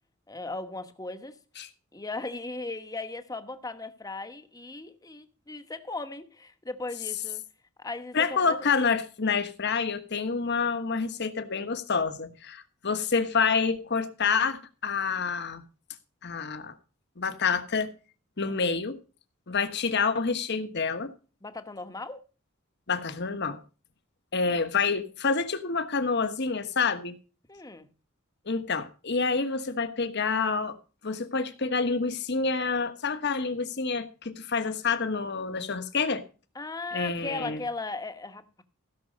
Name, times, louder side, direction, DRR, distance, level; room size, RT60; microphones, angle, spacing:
voice 1, 0.3-1.4 1.9-7.4 7.8-8.7 18.4-18.7 21.4-22.2 24.4-24.6 27.5-27.9 36.5-38.6, left 3 dB, 20° left, 1.1 m, -37 dB
voice 2, 8.1-15.6 16.2-16.7 17.2-17.9 18.4-19.0 19.5-21.1 22.9-23.6 24.3-27.1 28.5-30.8 31.0-36.2 36.9-37.6, left 5 dB, 55° left, 1.3 m, -28 dB
16.0 x 6.2 x 5.3 m
head